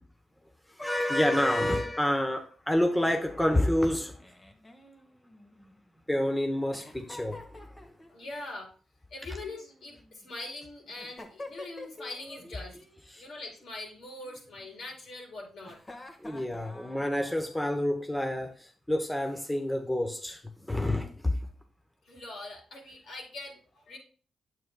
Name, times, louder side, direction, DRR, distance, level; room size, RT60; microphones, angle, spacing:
voice 1, 0.7-4.2 6.1-7.9 13.1-13.2 16.2-21.4, left 1 dB, 10° left, 0.8 m, -28 dB
Giggle, 4.2-6.0 6.7-8.3 9.4-10.3 11.0-12.2 12.4-13.0 14.2-15.0 15.6-17.7, left 2 dB, 25° left, 1.4 m, -48 dB
voice 2, 8.1-8.7 9.1-12.8 13.2-15.8 22.0-24.0, left 2 dB, 70° left, 4.1 m, -42 dB
9.2 x 7.6 x 2.2 m
cardioid pair, 85°, 0 cm